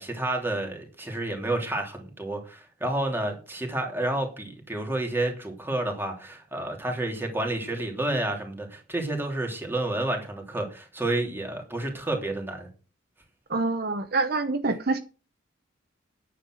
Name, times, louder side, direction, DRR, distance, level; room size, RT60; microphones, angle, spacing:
voice 1, 0.0-12.7, right 2 dB, 10° right, 3.1 m, -30 dB
voice 2, 13.5-15.0, right 3 dB, 50° right, 0.9 m, -26 dB
10.0 x 9.0 x 6.3 m
head